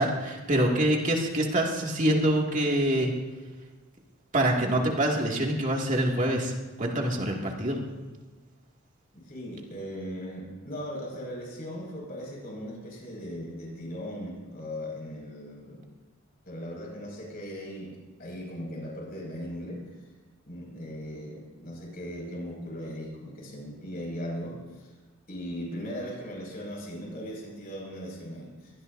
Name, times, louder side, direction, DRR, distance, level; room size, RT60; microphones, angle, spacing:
voice 1, 0.0-3.1 4.3-6.5 6.8-7.8, right 1 dB, 35° right, -1 dB, 2.3 m, -25 dB
voice 2, 9.1-15.8 16.4-17.9 18.2-19.8 20.5-24.9 25.3-28.7, equal, 45° left, -1 dB, 5.8 m, -38 dB
23.5 x 18.5 x 2.7 m, 1.2 s
head